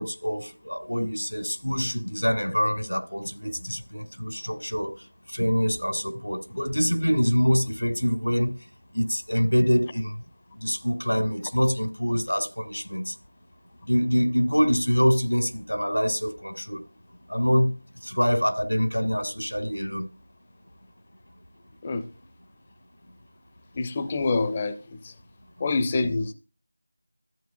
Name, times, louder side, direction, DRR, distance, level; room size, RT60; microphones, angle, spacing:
voice 1, 0.0-4.9 5.3-8.5 8.9-10.1 10.5-13.1 13.9-16.8 17.3-17.7 18.0-20.0 25.6-25.7, equal, 90° left, 1.9 m, -25 dB
voice 2, 23.8-24.8 25.6-26.3, left 3 dB, 15° left, 0.5 m, -25 dB
13.5 x 7.6 x 2.3 m
figure-of-eight pair, 170°, 0 cm